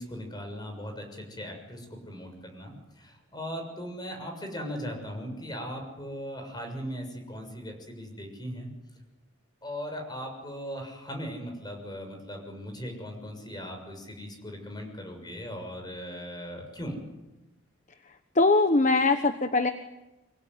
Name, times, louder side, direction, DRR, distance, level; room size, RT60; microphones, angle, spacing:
voice 1, 0.0-8.7 9.6-17.0, equal, 20° left, 3 dB, 6.7 m, -38 dB
voice 2, 18.4-19.7, left 3 dB, 35° left, 9 dB, 1.1 m, -21 dB
25.5 x 22.5 x 9.9 m, 1.0 s
head